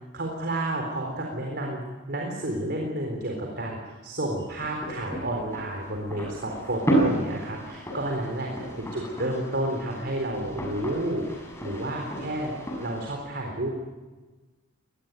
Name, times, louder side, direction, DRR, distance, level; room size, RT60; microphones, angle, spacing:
voice 1, 0.1-1.8 2.1-12.5 12.8-13.7, right 1 dB, 55° right, 1 dB, 4.1 m, -31 dB
sound 1, 4.4-13.2, right 1 dB, 15° left, 6.6 m, -32 dB
22.0 x 20.0 x 9.4 m, 1.3 s
head